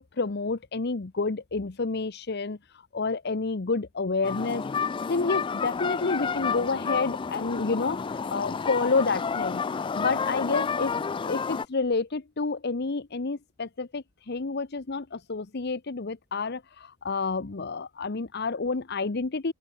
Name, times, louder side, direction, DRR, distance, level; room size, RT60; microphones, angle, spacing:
voice 1, 0.0-2.6 2.9-4.6 5.1-8.0 8.3-9.6 9.9-11.0 11.3-19.5, left 4 dB, 55° left, 0.8 m, -29 dB
sound 1, 4.2-11.7, left 5 dB, 25° left, 0.3 m, -30 dB
open air
head